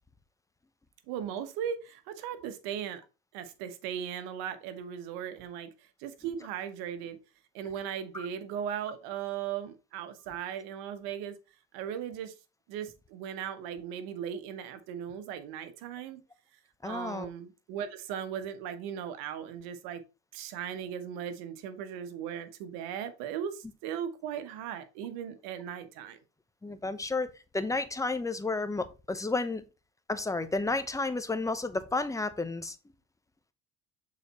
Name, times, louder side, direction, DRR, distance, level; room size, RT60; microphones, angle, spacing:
voice 1, 1.1-3.0 3.3-7.2 7.5-11.4 11.7-12.3 12.7-16.2 16.8-20.0 20.3-26.2, right 9 dB, 75° right, 1.2 m, -38 dB
voice 2, 16.8-17.3 26.6-29.6 30.1-32.8, left 3 dB, 10° left, 0.8 m, -32 dB
6.9 x 4.2 x 4.1 m
supercardioid pair, 95°, 36 cm